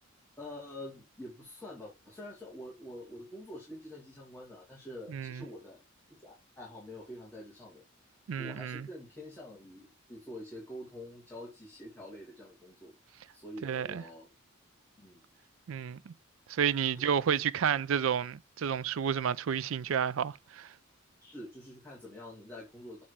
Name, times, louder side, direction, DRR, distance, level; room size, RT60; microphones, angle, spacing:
voice 1, 0.4-5.8 6.2-12.9 13.3-14.3 15.0-15.2 16.9-17.1 17.3-17.5 21.2-23.0, left 1 dB, 10° left, 2.3 m, -46 dB
voice 2, 5.1-5.4 8.3-8.8 13.6-14.0 15.7-16.1 16.5-20.7, right 8 dB, 70° right, 0.4 m, -31 dB
7.4 x 4.2 x 4.8 m
head